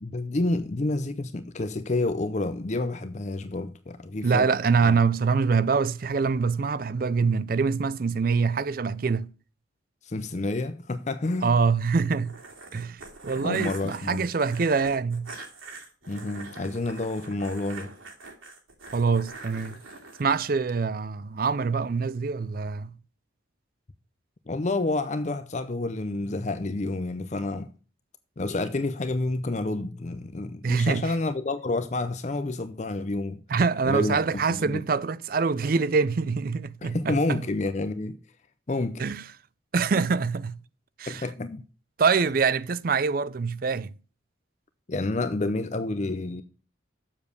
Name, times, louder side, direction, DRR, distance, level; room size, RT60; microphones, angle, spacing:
voice 1, 0.0-4.5 4.8-5.0 10.0-11.5 13.4-14.3 16.1-17.9 24.5-27.7 28.4-33.4 33.8-34.2 34.5-34.8 36.8-38.2 38.7-39.0 41.1-41.6 44.9-46.4, left 2 dB, 35° left, 0.5 m, -29 dB
voice 2, 4.2-9.3 11.4-12.3 12.7-15.3 18.9-19.8 20.2-22.9 30.6-31.1 33.5-37.4 39.0-39.2 39.7-40.6 41.0-41.2 42.0-43.9, right 5 dB, 45° right, 0.4 m, -25 dB
sound 1, 12.1-20.2, right 3 dB, 90° right, 2.8 m, -44 dB
7.2 x 7.1 x 6.5 m
head